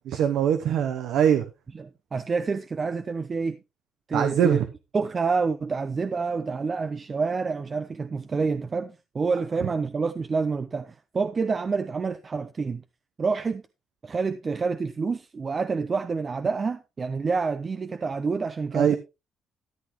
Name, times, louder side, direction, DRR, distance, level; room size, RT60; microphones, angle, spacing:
voice 1, 0.1-1.5 4.1-4.7 18.7-19.0, right 9 dB, 80° right, 0.9 m, -22 dB
voice 2, 1.7-3.6 4.1-4.6 4.9-12.8 13.2-13.6 14.0-19.0, right 4 dB, 35° right, 0.6 m, -28 dB
13.5 x 8.3 x 3.1 m
cardioid pair, 90°, 0 cm